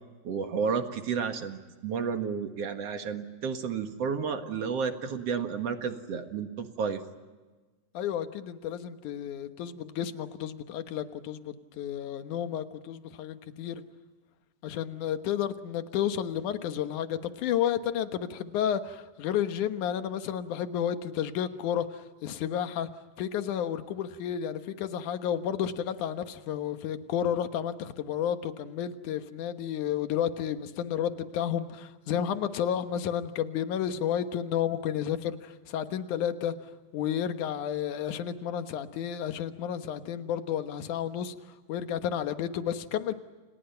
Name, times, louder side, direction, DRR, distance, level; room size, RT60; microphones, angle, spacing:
voice 1, 0.2-7.0, right 6 dB, 50° right, 6 dB, 2.5 m, -31 dB
voice 2, 7.9-13.8 14.6-22.9 23.2-36.5 36.9-41.4 41.7-43.1, left 9 dB, 70° left, 9 dB, 2.6 m, -31 dB
30.0 x 29.0 x 5.8 m, 1.3 s
omnidirectional pair, 3.8 m